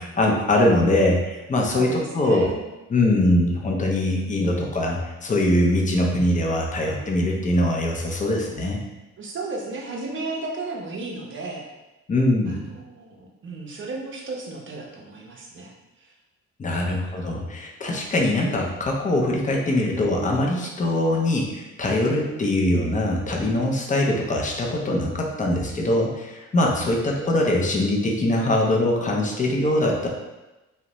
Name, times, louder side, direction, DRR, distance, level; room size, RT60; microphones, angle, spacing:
voice 1, 0.0-1.9 2.1-2.5 2.9-8.8 12.1-12.7 16.6-30.1, left 1 dB, 25° left, 0 dB, 0.5 m, -22 dB
voice 2, 1.7-2.6 9.2-11.7 12.5-16.1 16.7-17.0 26.8-27.1, right 3 dB, 40° right, -1 dB, 0.6 m, -34 dB
2.5 x 2.1 x 2.9 m, 1.0 s
cardioid pair, 90°, 30 cm